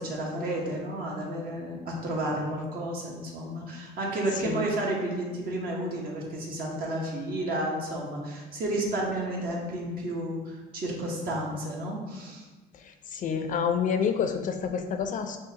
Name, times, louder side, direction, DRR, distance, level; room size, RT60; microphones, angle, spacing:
voice 1, 0.0-12.5, right 1 dB, 60° right, -2 dB, 1.1 m, -31 dB
voice 2, 13.1-15.4, left 7 dB, 50° left, 7 dB, 0.4 m, -28 dB
6.2 x 2.5 x 2.8 m, 1.3 s
cardioid pair, 110°, 17 cm